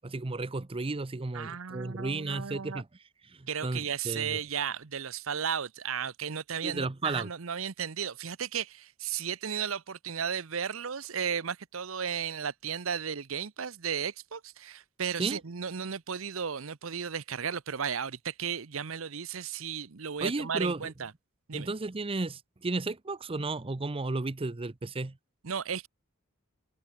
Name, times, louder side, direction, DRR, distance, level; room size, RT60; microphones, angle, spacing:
voice 1, 0.0-2.9 3.2-4.4 6.6-7.3 15.2-15.4 20.2-20.9 21.5-25.2, right 3 dB, 25° right, 0.7 m, -33 dB
voice 2, 1.3-2.8 3.5-21.1 21.5-21.7 25.4-25.9, right 7 dB, 70° right, 0.9 m, -34 dB
head